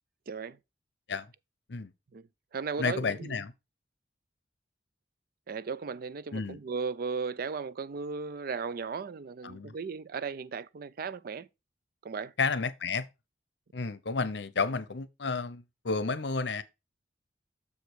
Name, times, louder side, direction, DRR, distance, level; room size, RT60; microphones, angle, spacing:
voice 1, 0.3-0.6 2.1-2.3 2.5-3.4 5.5-11.5 12.0-12.3, right 5 dB, 55° right, 0.4 m, -36 dB
voice 2, 2.8-3.5 6.3-6.6 9.4-9.7 12.4-13.1 13.7-16.6, left 4 dB, 70° left, 0.8 m, -31 dB
6.8 x 5.1 x 4.6 m
head